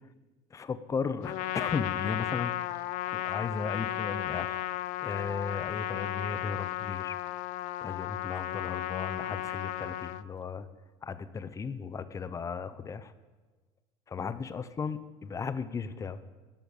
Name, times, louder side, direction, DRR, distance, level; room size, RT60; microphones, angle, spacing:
voice 1, 0.5-2.6 3.1-4.6 5.0-7.2 7.8-10.7 11.0-13.1 14.1-16.2, left 5 dB, 25° left, 13 dB, 0.7 m, -35 dB
Trumpet, 1.2-10.2, left 14 dB, 65° left, 0.5 m, -34 dB
11.0 x 9.0 x 7.2 m, 1.3 s
cardioid pair, 125°, 14 cm